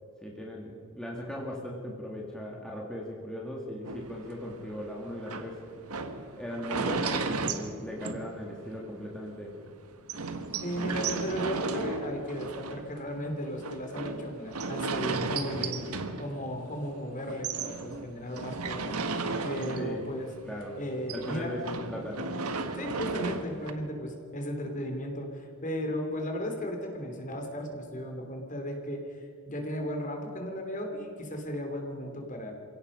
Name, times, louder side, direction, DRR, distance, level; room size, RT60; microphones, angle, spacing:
voice 1, 0.2-5.6 6.4-9.6 19.8-20.1 20.4-20.8 21.1-22.4, left 1 dB, 5° left, -3 dB, 2.2 m, -38 dB
sound 1, 3.8-8.8 9.2-9.3 9.5-9.6 10.1-16.9 17.2-20.3 20.5-23.7, right 4 dB, 85° right, 1.5 m, -35 dB
voice 2, 10.6-20.3 20.8-21.8 22.7-32.6, equal, 35° left, 3 dB, 3.2 m, -35 dB
28.0 x 17.0 x 5.5 m, 2.4 s
head